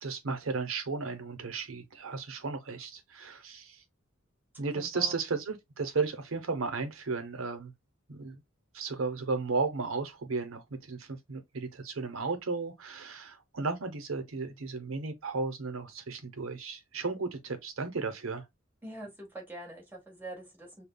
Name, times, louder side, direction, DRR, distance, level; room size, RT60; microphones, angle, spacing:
voice 1, 0.0-3.8 4.6-7.7 8.1-8.4 8.7-18.4, right 4 dB, 85° right, 0.8 m, -34 dB
voice 2, 4.7-5.1 18.8-20.8, right 1 dB, 10° right, 1.4 m, -44 dB
5.2 x 2.3 x 2.2 m
head